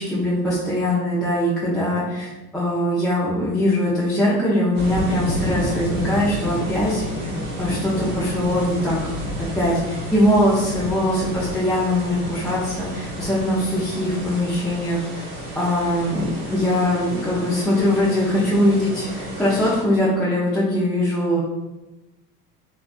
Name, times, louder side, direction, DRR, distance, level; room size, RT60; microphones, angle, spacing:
voice 1, 0.0-7.3 7.6-9.1 9.4-15.3 15.6-21.4, left 1 dB, ahead, -9 dB, 0.3 m, -21 dB
sound 1, 4.7-19.8, equal, 70° right, 1.1 m, -31 dB
3.2 x 2.3 x 2.3 m, 1.1 s
figure-of-eight pair, 65°, 48 cm